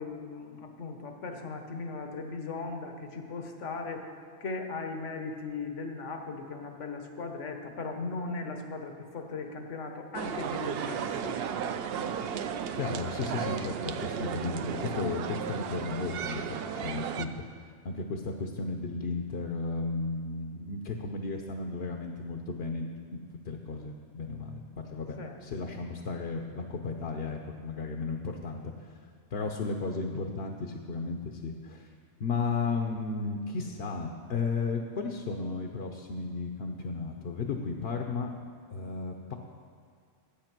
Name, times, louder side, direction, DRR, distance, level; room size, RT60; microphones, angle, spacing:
voice 1, 0.0-4.1 4.4-11.4 12.4-12.6 25.2-25.8, left 3 dB, 80° left, 4 dB, 1.4 m, -38 dB
sound 1, 10.1-17.3, right 7 dB, 65° right, 0.7 m, -34 dB
voice 2, 12.7-17.4 17.8-28.7 29.3-31.9 32.2-38.3 38.7-39.4, left 4 dB, 60° left, 3 dB, 0.9 m, -34 dB
12.0 x 8.5 x 6.0 m, 2.1 s
omnidirectional pair, 1.2 m